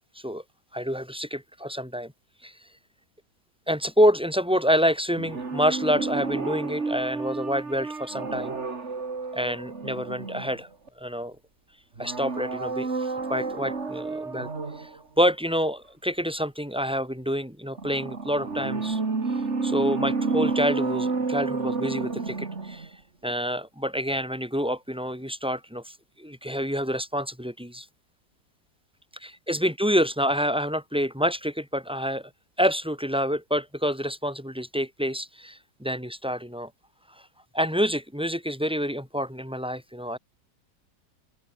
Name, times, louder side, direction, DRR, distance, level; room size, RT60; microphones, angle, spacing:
voice 1, 0.7-2.1 2.4-2.5 3.7-8.5 9.3-10.7 11.0-11.4 12.0-14.5 14.8-14.9 15.2-19.0 19.6-22.9 23.2-27.9 29.2-32.3 32.6-36.7 37.5-40.2, equal, 5° right, 6.7 m, -27 dB
sound 1, 5.2-10.9 12.0-15.0 17.8-23.0 23.2-23.3, right 4 dB, 40° right, 2.7 m, -30 dB
omnidirectional pair, 1.9 m